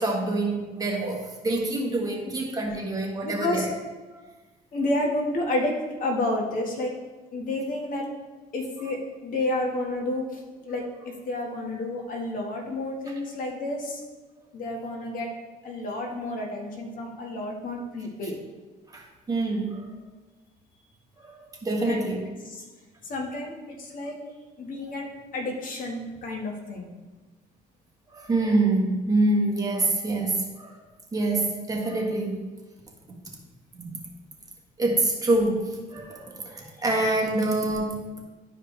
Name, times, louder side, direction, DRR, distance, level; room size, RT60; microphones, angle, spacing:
voice 1, 0.0-3.7 4.1-4.2 13.1-13.2 18.9-20.0 21.2-22.2 28.1-30.8 31.1-32.5 33.1-33.3 33.7-34.0 34.8-38.1, right 2 dB, 20° right, -1 dB, 1.5 m, -26 dB
voice 2, 3.2-3.6 4.7-7.0 7.3-8.1 8.5-10.8 11.2-14.0 14.5-15.3 15.6-18.4 21.8-22.0 22.5-22.6 23.0-24.2 24.6-26.9, left 1 dB, 55° left, 0 dB, 1.7 m, -30 dB
11.0 x 4.8 x 3.3 m, 1.2 s
cardioid pair, 110°, 17 cm